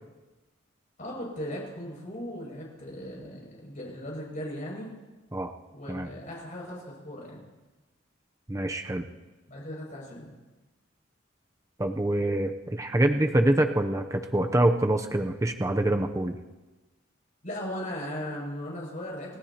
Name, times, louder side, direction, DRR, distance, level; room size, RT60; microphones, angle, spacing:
voice 1, 1.0-4.9 5.7-7.5 9.5-10.3 17.4-19.4, equal, 40° left, -3 dB, 6.5 m, -37 dB
voice 2, 8.5-9.1 11.8-16.4, right 1 dB, 15° right, 5 dB, 0.6 m, -25 dB
29.0 x 13.0 x 2.9 m, 1.2 s
head